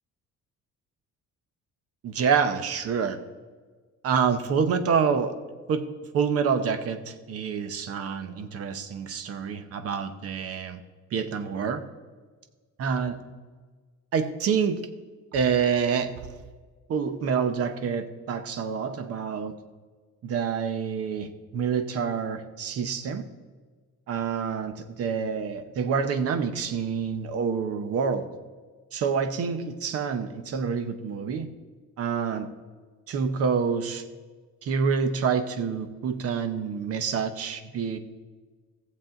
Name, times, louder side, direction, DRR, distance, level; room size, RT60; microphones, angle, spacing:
voice 1, 2.0-3.2 4.0-5.3 5.7-5.9 6.1-10.8 11.1-11.8 12.8-13.2 14.1-14.9 15.3-16.1 16.9-19.6 20.2-23.3 24.1-28.3 28.9-31.5 32.0-32.5 33.1-34.0 34.6-38.0, right 6 dB, 50° right, 10 dB, 0.9 m, -27 dB
17.0 x 7.5 x 3.8 m, 1.4 s
cardioid pair, 165°, 31 cm